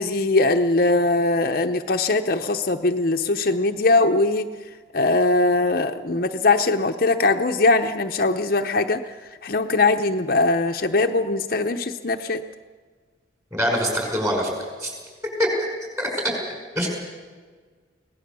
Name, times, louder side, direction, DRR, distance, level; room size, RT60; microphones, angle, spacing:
voice 1, 0.0-4.5 4.9-9.0 9.4-12.4, left 2 dB, 50° left, 6 dB, 0.8 m, -21 dB
voice 2, 13.5-14.5 14.8-14.9 15.6-15.7 16.0-16.1 16.8-16.9, equal, 15° right, 1 dB, 5.6 m, -24 dB
24.0 x 18.0 x 6.9 m, 1.5 s
head